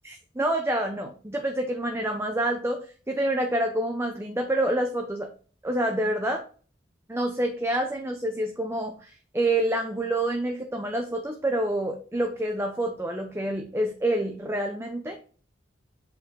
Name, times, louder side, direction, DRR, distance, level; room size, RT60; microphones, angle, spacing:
voice 1, 0.0-5.3 5.6-6.4 7.1-15.2, right 1 dB, 15° right, 4 dB, 0.7 m, -27 dB
7.8 x 4.7 x 3.9 m, 0.40 s
head